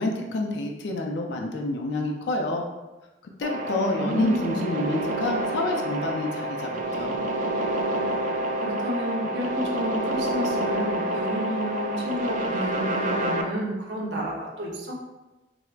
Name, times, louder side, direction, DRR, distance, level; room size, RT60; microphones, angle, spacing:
voice 1, 0.0-2.6 3.4-7.1, left 2 dB, 75° left, 2 dB, 0.4 m, -28 dB
sound 1, 3.4-13.4, right 1 dB, 45° right, 0.3 m, -28 dB
voice 2, 3.7-4.6 8.6-14.9, equal, 80° right, -2 dB, 0.7 m, -31 dB
4.4 x 2.0 x 2.3 m, 1.1 s
head